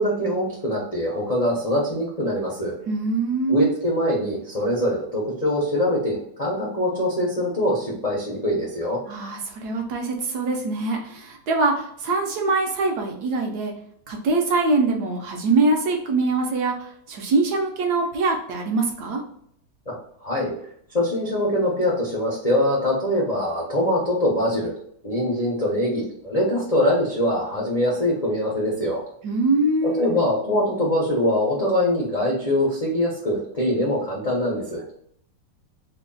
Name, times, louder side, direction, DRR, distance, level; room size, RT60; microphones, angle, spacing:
voice 1, 0.0-2.7 3.5-9.0 19.9-20.0 20.2-20.5 20.9-24.7 25.0-29.0 30.0-34.8, left 1 dB, 60° left, -5 dB, 0.4 m, -23 dB
voice 2, 2.9-3.7 9.1-13.7 14.1-19.2 29.2-30.3, right 3 dB, 70° right, 2 dB, 1.1 m, -23 dB
3.3 x 2.3 x 3.8 m, 0.68 s
omnidirectional pair, 2.0 m